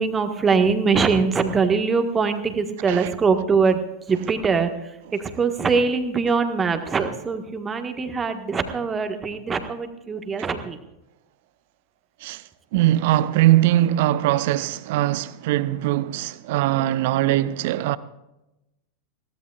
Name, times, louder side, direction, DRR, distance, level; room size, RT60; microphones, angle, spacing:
voice 1, 0.0-3.8 4.1-10.8, right 5 dB, 20° right, 1.6 m, -22 dB
voice 2, 12.7-18.0, right 14 dB, 50° right, 0.7 m, -21 dB
21.5 x 17.0 x 2.5 m
figure-of-eight pair, 90°, 0 cm